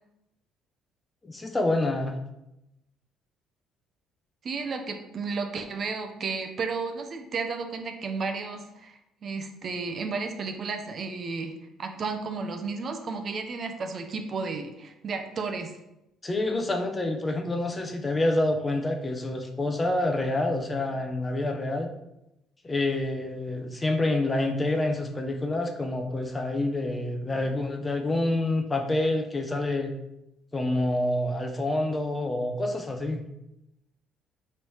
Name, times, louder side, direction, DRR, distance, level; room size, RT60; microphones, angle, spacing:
voice 1, 1.2-2.1 16.2-21.9 22.6-29.9 30.5-33.2, left 2 dB, 20° left, 4 dB, 0.5 m, -27 dB
voice 2, 4.4-11.5 11.8-15.7, right 4 dB, 45° right, 5 dB, 0.5 m, -33 dB
4.0 x 3.1 x 3.1 m, 0.87 s
cardioid pair, 95°, 0 cm